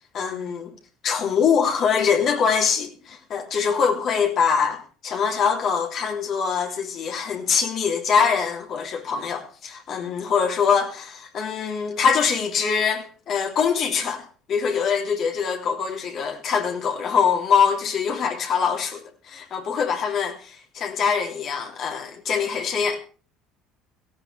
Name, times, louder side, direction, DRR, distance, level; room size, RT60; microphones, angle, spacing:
voice 1, 0.1-0.7 1.0-23.0, left 6 dB, 50° left, 3.3 m, -23 dB
17.5 x 16.0 x 3.5 m
hypercardioid pair, 65°, 0 cm